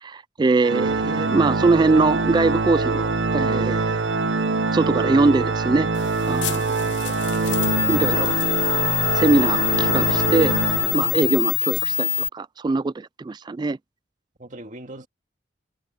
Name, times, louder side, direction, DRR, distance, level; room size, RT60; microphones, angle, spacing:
voice 1, 0.0-4.0 4.7-5.9 6.3-6.7 7.9-8.3 9.1-10.6 10.9-13.8, right 3 dB, 25° right, 0.3 m, -22 dB
Organ, 0.6-11.5, right 3 dB, 80° right, 0.8 m, -24 dB
sound 1, 6.0-12.3, left 18 dB, 90° left, 0.8 m, -25 dB
voice 2, 7.0-8.1 14.4-15.1, right 2 dB, 45° right, 2.1 m, -40 dB
head